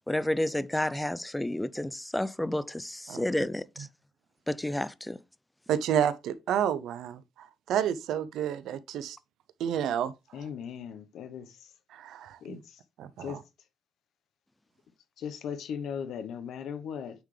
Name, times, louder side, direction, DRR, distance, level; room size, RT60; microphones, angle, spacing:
voice 1, 0.1-3.9 4.5-5.2, left 1 dB, 10° left, 0.4 m, -30 dB
voice 2, 5.7-9.2 9.6-10.1 11.9-12.6 13.0-13.4, right 9 dB, 80° right, 0.5 m, -30 dB
voice 3, 10.3-11.7 12.4-12.8 13.2-13.4 15.2-17.2, left 7 dB, 75° left, 1.0 m, -38 dB
9.0 x 3.6 x 3.3 m
cardioid pair, 90°, 0 cm